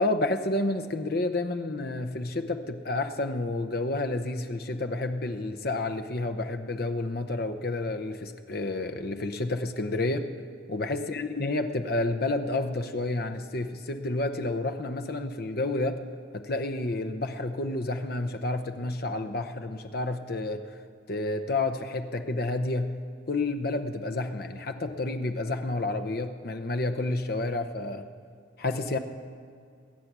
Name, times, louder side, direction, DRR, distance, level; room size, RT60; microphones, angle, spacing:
voice 1, 0.0-10.3 10.7-16.0 16.3-20.7 21.1-22.9 23.3-28.1 28.6-29.0, left 2 dB, 50° left, 7 dB, 0.8 m, -30 dB
21.0 x 8.5 x 6.1 m, 2.3 s
head